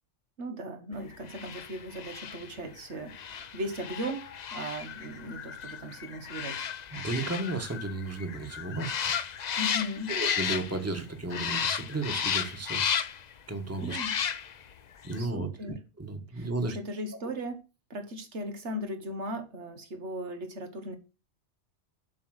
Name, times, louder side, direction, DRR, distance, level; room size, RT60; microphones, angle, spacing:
voice 1, 0.4-6.7 9.6-10.1 13.8-14.1 15.2-15.8 16.3-17.6 17.9-21.0, equal, 90° right, 1.8 m, -37 dB
sound 1, 1.2-11.0 11.3-13.3 13.8-14.7 15.0-15.2, left 7 dB, 50° left, 0.6 m, -34 dB
voice 2, 6.9-9.1 10.1-12.9 13.5-14.0 15.0-16.8, right 2 dB, 15° right, 1.2 m, -34 dB
7.4 x 5.8 x 6.3 m
omnidirectional pair, 1.1 m